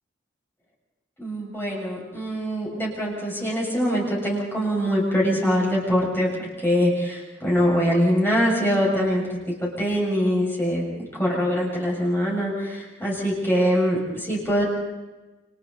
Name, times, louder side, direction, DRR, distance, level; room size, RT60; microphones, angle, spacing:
voice 1, 1.2-6.3 6.6-14.6, equal, 10° left, -4 dB, 7.1 m, -23 dB
29.5 x 28.5 x 4.2 m, 1.2 s
head